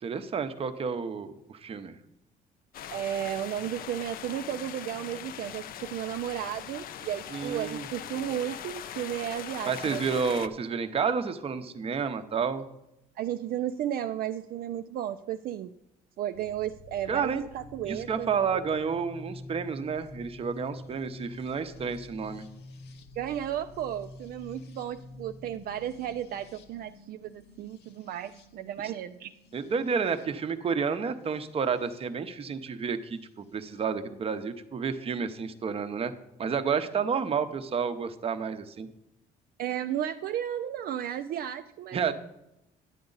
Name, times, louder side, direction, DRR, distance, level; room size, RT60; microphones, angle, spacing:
voice 1, 0.0-1.9 7.3-7.8 9.6-12.7 17.1-17.4 17.8-22.5 28.8-28.9 29.5-36.1 36.4-38.9 41.9-42.1, right 6 dB, 35° right, 10 dB, 0.8 m, -30 dB
sound 1, 2.7-10.5, left 10 dB, 60° left, 0.5 m, -41 dB
voice 2, 2.9-10.0 13.2-15.7 16.2-18.3 23.2-29.3 39.6-42.1, right 11 dB, 60° right, 8 dB, 0.4 m, -34 dB
sound 2, 16.3-32.1 33.2-33.8, left 2 dB, 75° left, 1.0 m, -49 dB
11.0 x 8.6 x 4.0 m, 0.86 s
cardioid pair, 110°, 17 cm